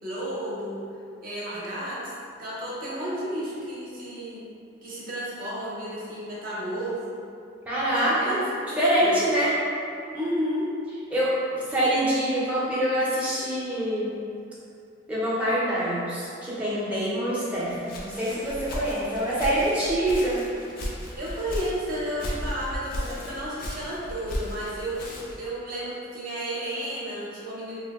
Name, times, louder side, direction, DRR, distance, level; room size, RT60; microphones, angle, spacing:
voice 1, 0.0-0.8 1.2-2.1 2.4-4.4 4.8-7.2 7.8-9.1 10.1-10.7 21.2-27.8, equal, 45° right, -7 dB, 0.7 m, -32 dB
voice 2, 7.7-8.4 8.8-9.5 11.1-14.2 15.1-20.4 23.0-23.2, right 1 dB, 5° right, -9 dB, 0.6 m, -25 dB
Walk footsteps, 17.5-25.5, left 1 dB, 45° left, 0.4 m, -36 dB
2.7 x 2.1 x 3.5 m, 2.5 s
head